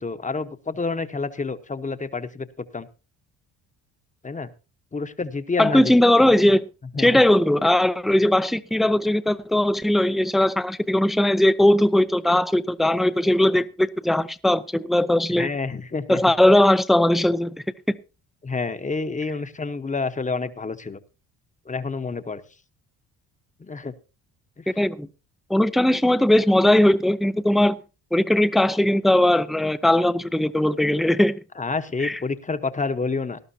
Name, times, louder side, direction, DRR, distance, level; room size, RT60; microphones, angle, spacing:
voice 1, 0.0-2.9 4.2-4.5 4.9-5.8 6.9-7.2 15.4-16.2 18.4-21.0 21.7-22.4 23.6-23.9 24.6-24.7 31.6-33.4, left 4 dB, 20° left, 1.0 m, -28 dB
voice 2, 5.6-6.6 7.0-15.5 16.1-17.5 17.9-18.0 24.7-25.1 25.5-27.8 28.1-31.4 32.0-32.2, left 1 dB, ahead, 0.5 m, -19 dB
18.5 x 12.0 x 2.8 m
cardioid pair, 90°, 37 cm